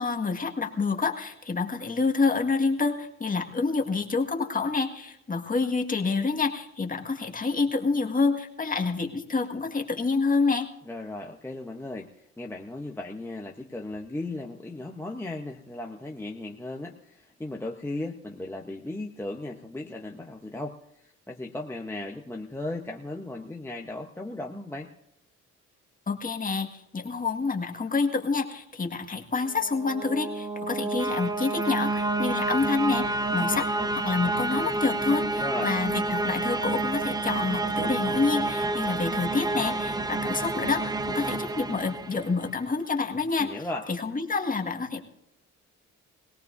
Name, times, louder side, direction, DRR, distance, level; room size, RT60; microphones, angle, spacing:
voice 1, 0.0-10.7 26.1-33.1 33.3-33.7 33.9-43.5 43.9-45.0, left 4 dB, 25° left, 4 dB, 1.8 m, -28 dB
voice 2, 10.9-24.9 35.4-35.7 43.4-43.9, left 2 dB, 10° left, 0 dB, 1.0 m, -36 dB
sound 1, 29.5-42.6, right 2 dB, 15° right, 0.6 m, -29 dB
22.5 x 17.5 x 2.7 m, 0.77 s
cardioid pair, 90°, 30 cm